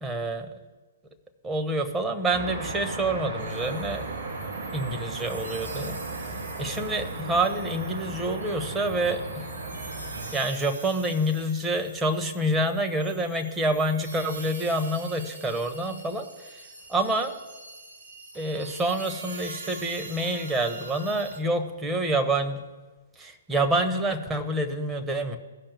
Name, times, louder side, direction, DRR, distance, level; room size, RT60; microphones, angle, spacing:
voice 1, 0.0-0.5 1.4-4.0 4.7-6.0 6.6-9.5 10.3-16.3 16.9-17.3 18.3-22.6 23.2-25.4, right 1 dB, 10° right, 4 dB, 1.0 m, -27 dB
sound 1, 2.3-10.3, right 2 dB, 50° right, 3.6 m, -35 dB
sound 2, 3.4-21.4, right 3 dB, 65° right, 1.8 m, -44 dB
16.5 x 5.8 x 3.3 m, 1.2 s
figure-of-eight pair, 120°, 0 cm